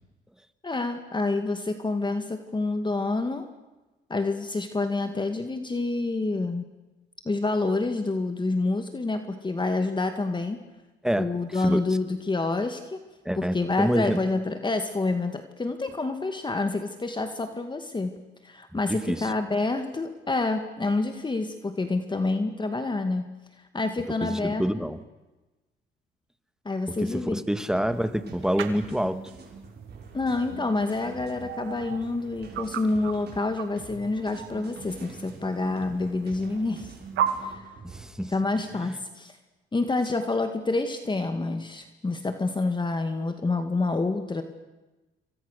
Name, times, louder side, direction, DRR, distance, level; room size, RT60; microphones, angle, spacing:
voice 1, 0.6-3.5 4.1-6.6 7.3-10.6 11.2-13.0 13.4-18.2 18.4-23.3 23.7-24.9 26.7-27.4 30.1-36.9 37.4-37.6 38.2-39.3 39.7-44.4, left 3 dB, 25° left, 7 dB, 2.2 m, -28 dB
voice 2, 13.2-14.2 18.9-19.3 24.2-25.0 27.0-29.2 37.8-38.3, equal, 5° right, 11 dB, 1.7 m, -27 dB
sound 1, 27.7-38.1, right 5 dB, 55° right, 6.7 m, -45 dB
sound 2, 28.6-28.7 30.8-30.9 31.4-32.0 32.5-33.1 33.6-33.7 34.1-34.8 35.5-35.6 35.8-35.9 37.2-37.3, right 10 dB, 85° right, 2.2 m, -31 dB
27.5 x 24.0 x 6.7 m, 1.1 s
cardioid pair, 90°, 20 cm